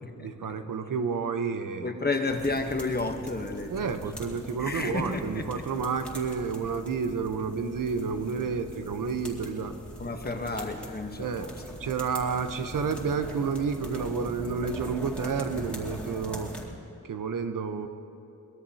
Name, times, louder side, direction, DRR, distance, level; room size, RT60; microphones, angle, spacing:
voice 1, 0.2-1.9 3.7-9.7 11.2-11.5 11.8-16.5 17.0-17.9, right 5 dB, 85° right, 7 dB, 1.0 m, -30 dB
voice 2, 1.8-3.7 4.6-5.6 10.0-11.5, left 3 dB, 30° left, 5 dB, 1.1 m, -31 dB
sound 1, 2.3-16.7, equal, 5° left, 2.3 m, -42 dB
23.0 x 20.5 x 2.8 m, 2.8 s
wide cardioid pair, 125°, 32 cm